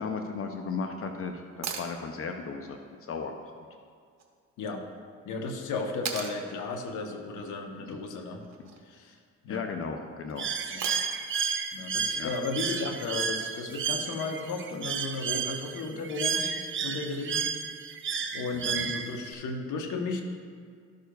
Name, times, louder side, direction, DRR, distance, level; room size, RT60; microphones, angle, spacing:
voice 1, 0.0-2.8 3.1-3.6 7.8-8.0 9.5-10.5 12.2-12.3 18.8-18.9, left 5 dB, 50° left, 5 dB, 0.6 m, -35 dB
sound 1, 1.6-1.9 4.2-4.3 6.1-6.4 8.4-8.8 10.8-11.3 13.4-13.5, right 6 dB, 60° right, 1.0 m, -36 dB
voice 2, 5.2-8.4 8.8-9.2 9.4-9.6 10.7-10.8 11.7-16.5 16.8-17.5 18.3-20.2, left 3 dB, 75° left, 3 dB, 1.0 m, -34 dB
Bird, 10.4-19.3, right 6 dB, 40° right, 0.6 m, -32 dB
12.5 x 6.6 x 2.3 m, 2.1 s
cardioid pair, 90°, 30 cm